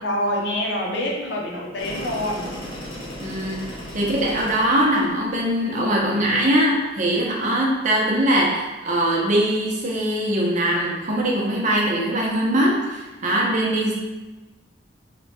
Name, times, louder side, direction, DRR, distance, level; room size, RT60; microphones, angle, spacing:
voice 1, 0.0-2.5, left 1 dB, 65° left, -2 dB, 0.7 m, -26 dB
sound 1, 1.8-7.4, equal, 25° left, 0.6 m, -37 dB
voice 2, 3.2-3.6 3.9-13.9, right 1 dB, 40° right, -3 dB, 0.7 m, -21 dB
2.9 x 2.2 x 4.2 m, 1.2 s
head